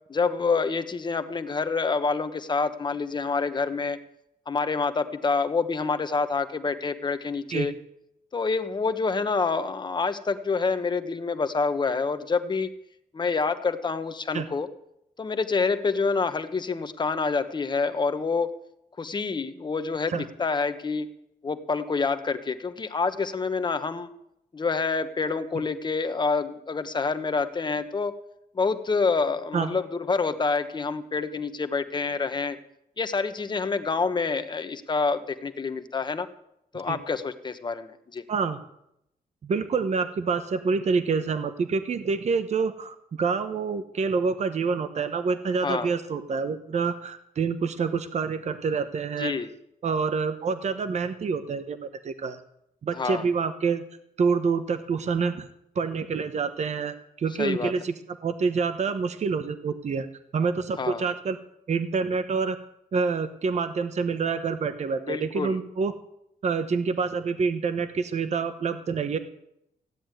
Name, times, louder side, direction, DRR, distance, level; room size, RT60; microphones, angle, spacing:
voice 1, 0.1-4.0 4.5-7.7 8.3-12.7 13.1-14.7 15.2-18.5 19.0-21.1 21.4-24.1 24.5-28.1 28.5-32.6 33.0-36.3 36.7-38.2 45.6-45.9 49.2-49.5 52.9-53.2 57.4-57.7 60.8-61.1 65.1-65.6, left 4 dB, 30° left, 9 dB, 1.1 m, -27 dB
voice 2, 38.3-38.6 39.4-49.3 49.8-52.4 52.8-53.8 54.2-55.5 55.7-60.1 60.3-61.4 61.7-62.6 62.9-65.9 66.4-69.2, right 5 dB, 50° right, 10 dB, 1.0 m, -27 dB
16.0 x 10.0 x 9.0 m, 0.79 s
wide cardioid pair, 170°, 15 cm